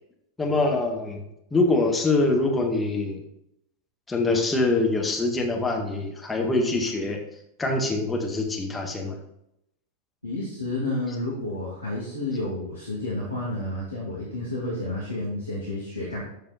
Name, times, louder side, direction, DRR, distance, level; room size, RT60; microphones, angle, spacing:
voice 1, 0.4-1.2 1.5-3.2 4.1-7.2 7.6-9.2, left 2 dB, 10° left, 1 dB, 1.9 m, -24 dB
voice 2, 10.2-16.2, left 2 dB, 80° left, -6 dB, 2.7 m, -30 dB
13.5 x 5.0 x 4.3 m, 0.80 s
figure-of-eight pair, 90°, 0 cm